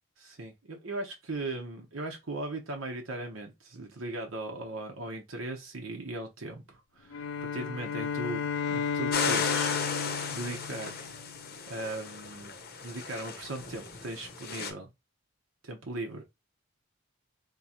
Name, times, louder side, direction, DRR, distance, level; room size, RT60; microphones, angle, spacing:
voice 1, 0.2-9.8 10.3-11.1 11.7-12.5 12.8-14.9 15.6-16.3, right 2 dB, 80° right, 1.0 m, -38 dB
sound 1, 7.1-11.6, left 6 dB, 85° left, 0.5 m, -33 dB
sound 2, 9.1-14.7, left 5 dB, 50° left, 0.7 m, -35 dB
3.9 x 3.0 x 2.9 m
head